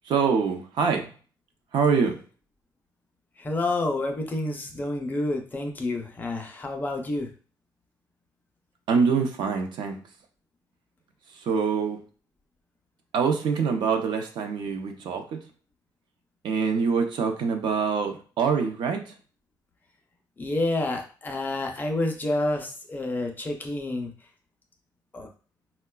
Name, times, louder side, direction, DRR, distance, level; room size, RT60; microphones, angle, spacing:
voice 1, 0.0-1.1 1.7-2.2 8.9-10.0 11.3-12.0 13.1-15.4 16.4-19.1, right 5 dB, 70° right, 4 dB, 0.6 m, -25 dB
voice 2, 3.4-7.3 20.4-24.1 25.1-25.3, left 2 dB, 20° left, 3 dB, 0.5 m, -29 dB
4.6 x 2.2 x 2.2 m, 0.38 s
cardioid pair, 160°, 8 cm